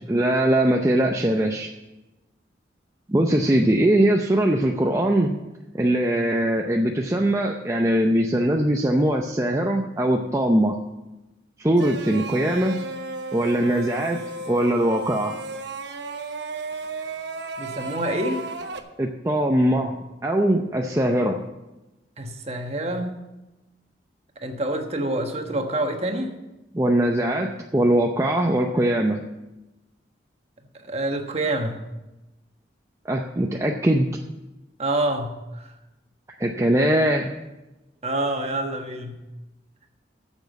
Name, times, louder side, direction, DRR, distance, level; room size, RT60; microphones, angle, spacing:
voice 1, 0.0-1.7 3.1-5.4 5.7-10.8 11.6-12.8 13.3-14.2 14.5-15.4 19.0-20.0 20.2-21.4 26.7-29.2 33.1-34.1 36.4-37.3, right 1 dB, 15° right, 2 dB, 0.6 m, -21 dB
sound 1, 11.8-18.8, right 3 dB, 75° right, 1.0 m, -34 dB
voice 2, 17.6-18.5 22.2-23.2 24.4-26.3 30.8-31.8 34.8-35.7 38.0-39.2, right 1 dB, 35° right, 4 dB, 1.2 m, -27 dB
9.4 x 7.1 x 8.1 m, 1.0 s
head